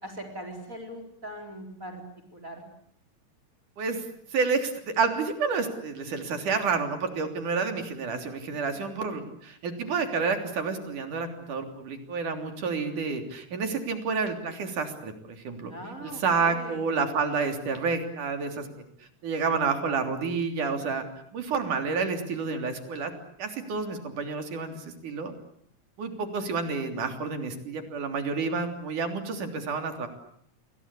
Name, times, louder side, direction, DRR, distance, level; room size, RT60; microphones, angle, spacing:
voice 1, 0.0-2.0 2.3-2.6 8.7-9.3 15.7-16.8, equal, 25° right, 6 dB, 4.8 m, -41 dB
voice 2, 4.3-15.7 16.0-18.7 19.2-21.0 21.3-23.1 23.4-25.3 26.0-30.1, right 5 dB, 80° right, 6 dB, 4.8 m, -29 dB
29.5 x 23.0 x 8.4 m, 0.66 s
omnidirectional pair, 3.5 m